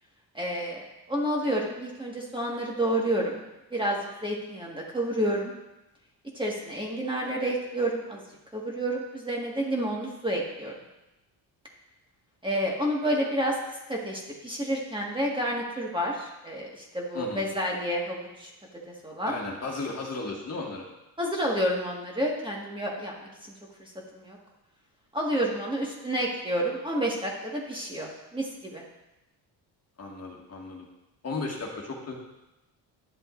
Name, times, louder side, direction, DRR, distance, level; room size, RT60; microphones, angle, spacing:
voice 1, 0.3-3.4 3.7-5.5 6.3-8.2 8.5-10.7 12.4-13.6 13.9-18.5 19.0-19.3 21.2-23.1 23.8-24.4 25.1-28.8, right 1 dB, 10° right, -3 dB, 1.6 m, -29 dB
voice 2, 17.1-17.5 19.2-20.8 30.0-30.9 31.2-32.1, left 3 dB, 35° left, -2 dB, 1.8 m, -35 dB
11.5 x 7.4 x 2.6 m, 0.97 s
cardioid pair, 95°, 45 cm